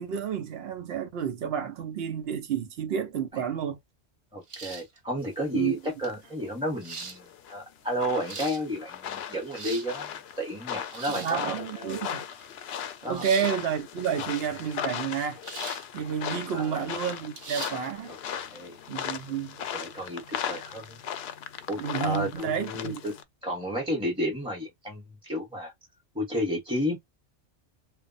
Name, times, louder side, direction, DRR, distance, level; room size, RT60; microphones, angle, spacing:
voice 1, 0.0-3.8 5.5-5.8 11.1-12.3 13.1-15.4 15.9-18.1 18.9-19.6 21.8-23.0, right 8 dB, 70° right, 0.8 m, -30 dB
voice 2, 4.3-10.1 10.4-11.9 13.0-13.2 16.4-16.9 18.1-18.8 19.7-21.0 21.7-23.1 23.4-25.7 26.1-27.0, equal, 5° right, 0.9 m, -32 dB
sound 1, 4.5-5.0 6.0-6.1 6.8-7.2 8.0-8.6 9.3-9.9 10.9-11.4 13.1-13.5 15.4-15.9 16.3-16.4 17.4-17.8, right 4 dB, 40° right, 0.5 m, -39 dB
sound 2, 6.1-23.2, left 9 dB, 70° left, 0.8 m, -38 dB
2.2 x 2.2 x 3.9 m
omnidirectional pair, 1.1 m